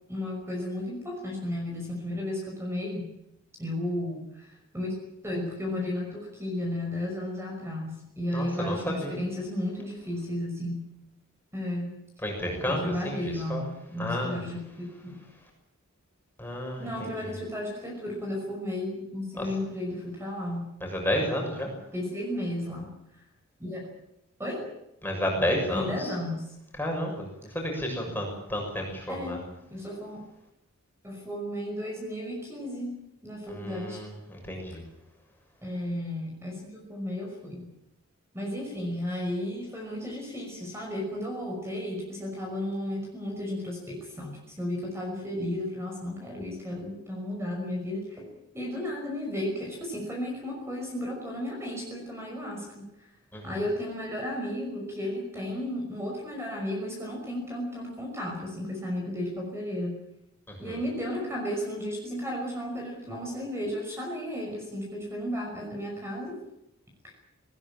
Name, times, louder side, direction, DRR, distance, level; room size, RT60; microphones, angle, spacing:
voice 1, 0.1-3.1 3.6-5.0 5.2-10.9 11.5-11.9 12.7-15.3 16.8-20.7 21.9-23.0 23.6-23.9 24.4-24.7 25.7-26.5 29.1-30.3 31.0-34.0 35.6-37.7 38.3-52.9 53.4-60.0 60.6-66.4, left 1 dB, 10° right, 0 dB, 5.8 m, -34 dB
voice 2, 8.3-9.2 12.2-13.6 14.0-14.4 16.4-17.2 19.4-19.5 20.8-21.7 25.0-26.1 26.8-27.3 27.5-29.4 33.5-34.8 53.3-53.6 60.6-60.8, equal, 10° left, 1 dB, 6.8 m, -31 dB
20.0 x 19.5 x 8.9 m, 0.82 s
head